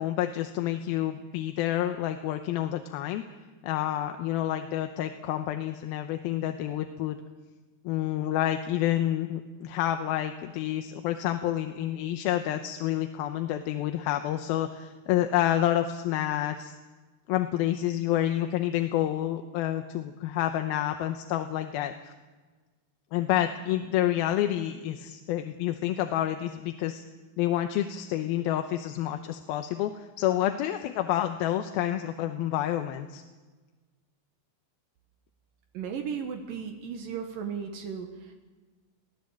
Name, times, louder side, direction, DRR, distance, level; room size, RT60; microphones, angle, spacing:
voice 1, 0.0-3.2 3.6-7.2 7.9-16.8 17.3-22.1 23.1-27.0 27.4-33.2, left 12 dB, 90° left, 7 dB, 2.7 m, -29 dB
voice 2, 35.7-38.3, right 7 dB, 75° right, 4 dB, 2.9 m, -35 dB
22.0 x 16.5 x 7.4 m, 1.3 s
omnidirectional pair, 4.2 m